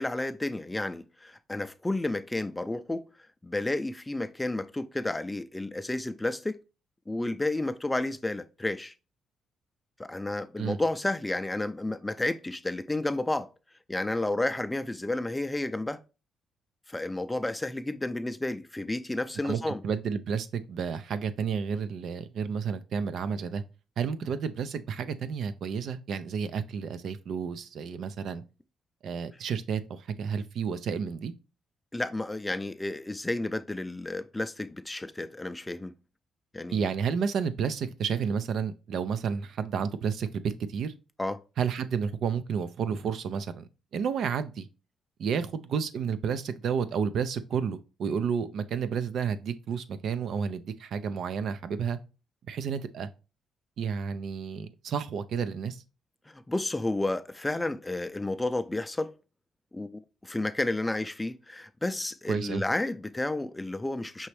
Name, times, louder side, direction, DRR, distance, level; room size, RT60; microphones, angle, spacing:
voice 1, 0.0-3.0 3.4-6.6 7.1-8.9 10.0-13.5 13.9-16.0 16.9-19.8 31.9-35.9 36.5-36.9 41.2-41.4 56.3-59.1 59.7-59.9 60.2-64.3, left 2 dB, 10° left, 0.4 m, -31 dB
voice 2, 19.4-23.6 24.0-28.4 29.0-31.3 36.7-40.9 41.6-44.7 45.2-52.0 52.5-53.1 53.8-55.8 62.3-62.6, right 6 dB, 70° right, 0.5 m, -31 dB
5.5 x 3.0 x 3.2 m
cardioid pair, 90°, 0 cm